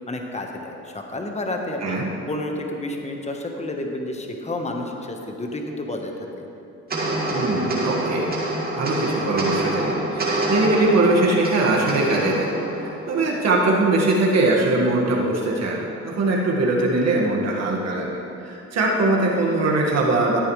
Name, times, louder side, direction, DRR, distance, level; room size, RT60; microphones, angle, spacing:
voice 1, 0.1-2.0 2.3-6.5, left 1 dB, 20° left, 2 dB, 1.2 m, -30 dB
sound 1, 6.9-13.5, right 1 dB, 30° right, 2.4 m, -26 dB
voice 2, 7.3-8.3 8.8-12.5 12.8-20.4, right 2 dB, 60° right, -3 dB, 1.8 m, -21 dB
14.0 x 8.8 x 3.2 m, 2.8 s
cardioid pair, 90°, 30 cm